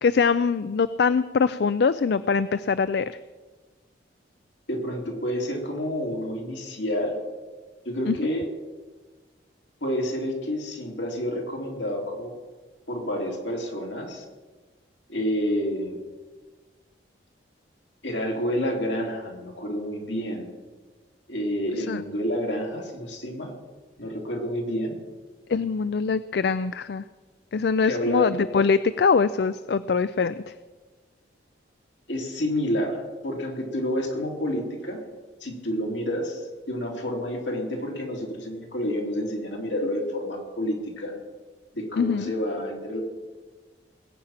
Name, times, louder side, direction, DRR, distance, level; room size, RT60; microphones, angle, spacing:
voice 1, 0.0-3.1 8.1-8.2 21.9-22.0 25.5-27.0 27.5-30.4 42.0-42.3, left 5 dB, 60° left, 14 dB, 0.4 m, -23 dB
voice 2, 4.7-7.2 7.8-8.5 9.8-12.3 12.9-14.2 15.1-16.0 18.0-20.5 21.3-23.5 24.0-25.0 27.8-28.3 32.1-35.0 35.4-41.1 41.7-43.0, equal, 80° left, 1 dB, 3.0 m, -29 dB
20.0 x 8.8 x 5.7 m, 1.3 s
head